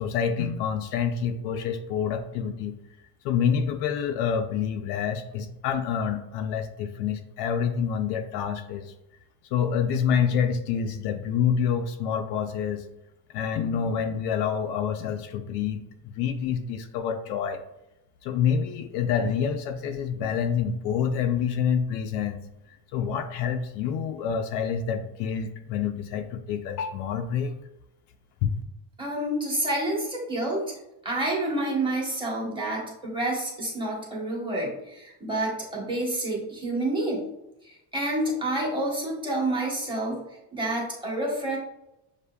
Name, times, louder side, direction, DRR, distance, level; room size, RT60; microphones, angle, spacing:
voice 1, 0.0-2.8 3.2-8.9 9.5-12.8 13.3-17.6 18.2-22.4 22.9-27.5 28.4-28.6, left 7 dB, 65° left, 7 dB, 0.5 m, -27 dB
voice 2, 29.0-30.8 31.0-37.3 37.6-40.2 40.5-41.6, right 1 dB, 10° right, -4 dB, 1.0 m, -28 dB
6.6 x 2.6 x 2.2 m, 0.90 s
cardioid pair, 160°, 45 cm